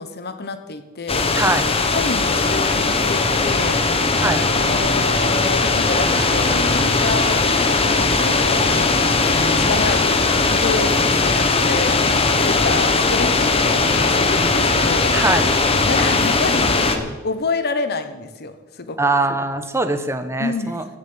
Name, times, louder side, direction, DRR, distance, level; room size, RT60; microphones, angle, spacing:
voice 1, 0.0-1.2 1.9-3.8 4.3-7.4 7.7-12.0 12.5-15.1 15.8-19.0 20.4-20.9, left 3 dB, 50° left, 10 dB, 1.1 m, -28 dB
sound 1, 1.1-17.0, left 3 dB, 25° left, 1.2 m, -19 dB
voice 2, 1.4-1.7 4.2-4.4 15.1-15.5 19.0-20.8, right 2 dB, 10° right, 8 dB, 1.1 m, -21 dB
sound 2, 2.8-17.1, equal, 70° left, 2.9 m, -32 dB
sound 3, 5.8-10.8, right 3 dB, 65° right, 1.4 m, -36 dB
16.0 x 7.2 x 8.0 m, 1.1 s
head